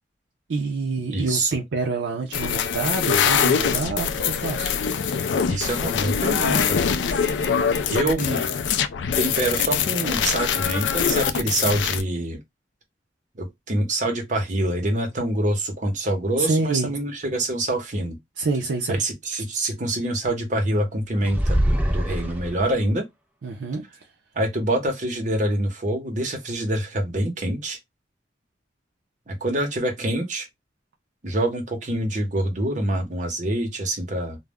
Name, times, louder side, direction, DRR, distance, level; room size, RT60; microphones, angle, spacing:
voice 1, 0.5-4.7 16.4-16.9 18.4-19.0 23.4-23.8, right 3 dB, 85° right, 0.5 m, -27 dB
voice 2, 1.1-1.6 5.5-6.8 7.9-8.4 9.2-12.4 13.3-18.2 18.9-21.6 21.9-23.1 24.3-27.8 29.3-30.5 31.2-34.4, right 1 dB, 45° right, 0.8 m, -25 dB
sound 1, 2.3-12.0, left 7 dB, 80° left, 0.4 m, -23 dB
sound 2, 21.2-22.9, equal, 10° right, 0.4 m, -23 dB
2.2 x 2.0 x 3.4 m
head